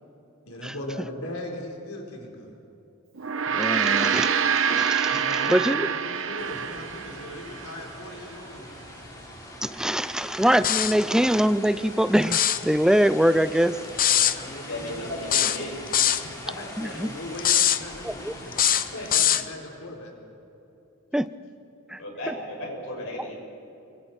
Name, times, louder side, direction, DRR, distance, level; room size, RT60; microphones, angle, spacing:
voice 1, 0.5-2.6 5.1-8.8 14.2-15.0 16.4-18.7 19.1-20.1, left 1 dB, 90° left, 0 dB, 4.2 m, -38 dB
Gong, 3.2-7.8, right 7 dB, 65° right, 1.0 m, -26 dB
voice 2, 3.5-4.3 4.6-5.2 5.5-5.9 9.6-13.8 16.8-17.1 18.0-18.3 21.1-21.3 21.9-22.0 22.3-22.4, equal, 5° right, 13 dB, 0.4 m, -23 dB
sound 1, 6.4-19.3, left 1 dB, 15° left, 4.1 m, -42 dB
sound 2, 10.6-11.0 12.2-12.6 14.0-14.4 15.3-16.2 17.4-17.8 18.5-19.5, left 10 dB, 40° left, 0.8 m, -21 dB
voice 3, 14.6-15.7 16.2-16.3 18.9-19.1 22.0-23.3, left 1 dB, 65° left, -1 dB, 6.4 m, -35 dB
28.5 x 24.5 x 4.4 m, 3.0 s
head